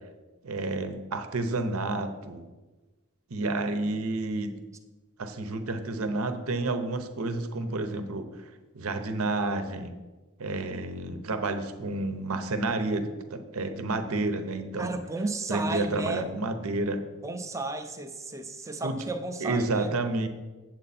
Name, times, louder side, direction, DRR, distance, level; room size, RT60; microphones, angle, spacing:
voice 1, 0.4-2.4 3.3-4.5 5.2-8.3 8.7-9.9 10.4-15.0 15.5-17.0 18.8-19.0 19.4-20.3, right 2 dB, 75° right, 8 dB, 0.9 m, -30 dB
voice 2, 10.5-10.9 14.8-16.3 17.2-19.9, right 2 dB, 15° right, 7 dB, 0.6 m, -34 dB
8.6 x 7.6 x 4.2 m, 1.2 s
head